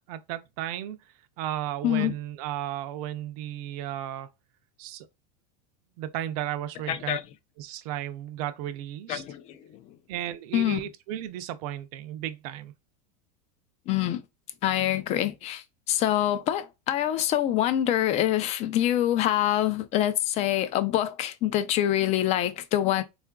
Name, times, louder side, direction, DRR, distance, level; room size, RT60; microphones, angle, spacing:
voice 1, 0.1-1.0 1.4-4.3 4.8-5.1 6.0-7.2 7.6-9.2 10.1-12.7, right 12 dB, 60° right, 0.5 m, -34 dB
voice 2, 6.9-7.2 9.1-9.8 10.5-10.8 13.9-14.2 14.6-23.0, left 12 dB, 30° left, 0.4 m, -25 dB
3.7 x 2.4 x 2.3 m
supercardioid pair, 145°, 21 cm